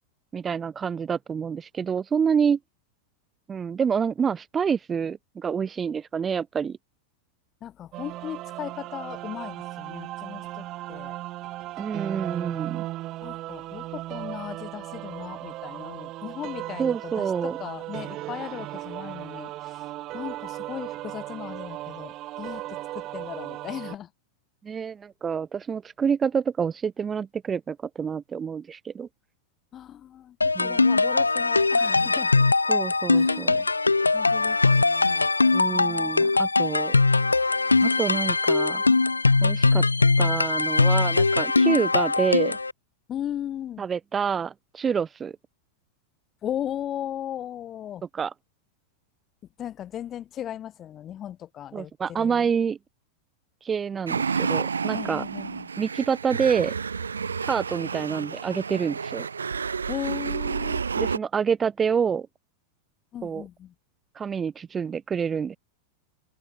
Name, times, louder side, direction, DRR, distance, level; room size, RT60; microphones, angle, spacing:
voice 1, 0.3-2.6 3.5-6.8 11.8-12.8 16.8-17.6 24.6-29.1 30.6-30.8 32.7-33.6 35.5-37.0 37.8-38.8 39.4-39.8 40.2-42.6 43.8-45.3 48.1-48.3 51.7-52.8 53.6-55.2 55.8-56.7 57.5-59.3 61.0-62.3 63.2-63.4 64.2-65.6, right 6 dB, 20° right, 0.4 m, -27 dB
voice 2, 7.6-11.2 13.2-19.8 20.1-24.1 29.7-32.3 33.1-33.6 34.1-35.3 35.7-36.1 43.1-43.8 46.4-48.0 49.6-52.5 54.9-55.7 59.9-60.9 63.1-63.7, left 10 dB, 30° left, 0.6 m, -37 dB
sound 1, 7.9-24.0, right 16 dB, 35° right, 1.5 m, -36 dB
sound 2, 30.4-42.7, left 3 dB, 80° left, 0.3 m, -21 dB
sound 3, 54.1-61.2, right 5 dB, 75° right, 0.8 m, -30 dB
open air
figure-of-eight pair, 90°, 0 cm